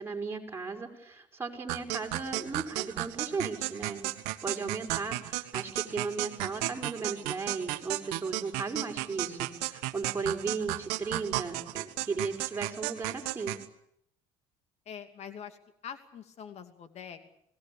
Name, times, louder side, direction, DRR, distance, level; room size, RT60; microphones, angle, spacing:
voice 1, 0.0-4.1 4.4-13.6, right 4 dB, 15° right, 1 dB, 5.3 m, -36 dB
sound 1, 1.7-13.7, right 19 dB, 75° right, 1.4 m, -34 dB
voice 2, 10.2-10.5 14.9-15.6 15.8-17.3, left 8 dB, 50° left, 8 dB, 2.7 m, -45 dB
28.5 x 18.5 x 8.6 m, 0.74 s
supercardioid pair, 85°, 14 cm